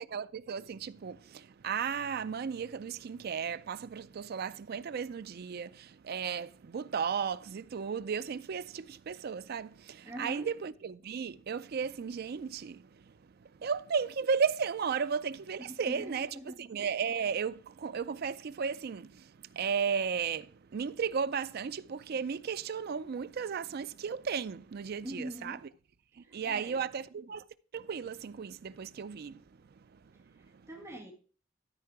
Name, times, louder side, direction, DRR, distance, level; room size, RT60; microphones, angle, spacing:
voice 1, 0.0-16.3 16.6-25.6 26.2-27.4 27.7-30.7, right 6 dB, 55° right, 0.4 m, -35 dB
voice 2, 10.0-10.5 15.6-16.6 25.0-25.6 26.2-26.8 30.2-31.1, equal, 15° right, 2.1 m, -44 dB
13.0 x 4.6 x 4.7 m
head